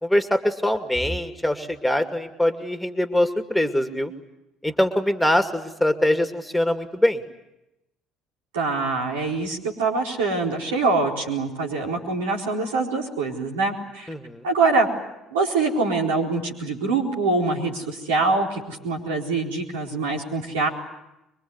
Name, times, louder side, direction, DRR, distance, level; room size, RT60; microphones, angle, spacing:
voice 1, 0.0-4.1 4.6-7.2 14.1-14.4, left 1 dB, 5° left, 7 dB, 2.4 m, -23 dB
voice 2, 8.5-14.1 14.4-14.9 15.3-20.7, right 3 dB, 80° right, -1 dB, 4.3 m, -24 dB
24.0 x 23.0 x 9.7 m, 0.91 s
hypercardioid pair, 55°, 0 cm